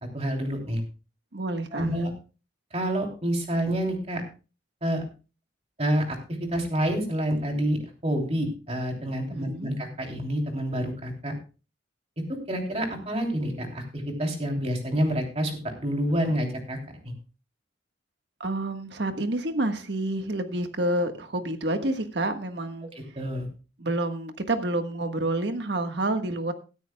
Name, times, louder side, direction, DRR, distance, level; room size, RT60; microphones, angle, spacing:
voice 1, 0.1-0.8 1.7-2.1 2.7-4.2 4.8-5.0 5.8-11.3 12.2-16.8 17.0-17.1 23.2-23.5, equal, 35° right, 2 dB, 3.1 m, -28 dB
voice 2, 1.3-1.9 9.3-9.8 18.4-22.9 23.8-26.5, right 1 dB, 65° right, 7 dB, 1.5 m, -28 dB
16.5 x 13.5 x 2.3 m, 0.34 s
head